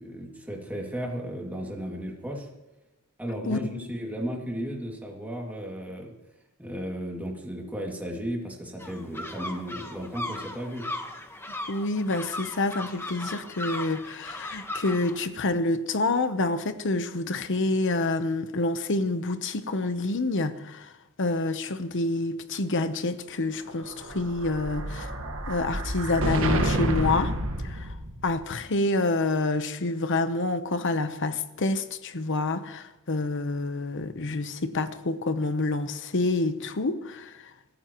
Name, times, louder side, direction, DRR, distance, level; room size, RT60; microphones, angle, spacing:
voice 1, 0.0-2.5 3.2-6.1 6.6-10.9, equal, 5° right, 2.4 m, -34 dB
voice 2, 3.5-3.9 11.7-20.9 21.2-25.1 25.5-27.9 28.2-37.5, left 2 dB, 55° left, 0.9 m, -28 dB
sound 1, 8.8-15.2, left 1 dB, 10° left, 1.2 m, -37 dB
Explosion, 23.8-28.4, right 1 dB, 65° right, 1.6 m, -29 dB
24.0 x 14.0 x 3.1 m
head